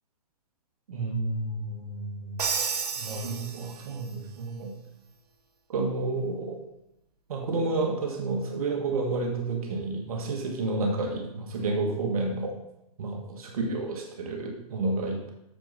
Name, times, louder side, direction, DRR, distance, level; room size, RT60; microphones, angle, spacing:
voice 1, 0.9-2.5 3.0-4.8 5.7-6.6 7.3-12.5 13.0-15.3, right 3 dB, 65° right, 2 dB, 1.6 m, -30 dB
Crash cymbal, 2.4-4.1, right 6 dB, 80° right, 1.3 m, -32 dB
8.7 x 7.4 x 4.0 m, 0.85 s
hypercardioid pair, 145°, 20 cm